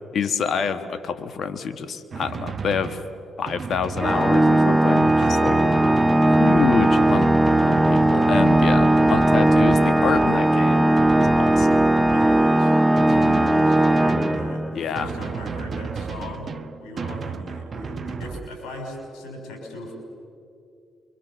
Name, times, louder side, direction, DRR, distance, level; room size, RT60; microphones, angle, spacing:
voice 1, 0.1-3.0 3.4-5.5 6.4-7.3 7.6-10.9 11.1-11.9 14.7-15.1, left 6 dB, 60° left, 11 dB, 1.6 m, -27 dB
Drum, 2.1-18.5, right 6 dB, 50° right, 0.9 m, -32 dB
Organ, 4.0-14.8, right 1 dB, 10° right, 0.6 m, -18 dB
voice 2, 5.2-6.1 12.1-19.9, left 2 dB, 80° left, 2 dB, 6.0 m, -37 dB
27.5 x 24.5 x 7.2 m, 2.6 s
supercardioid pair, 60°, 0 cm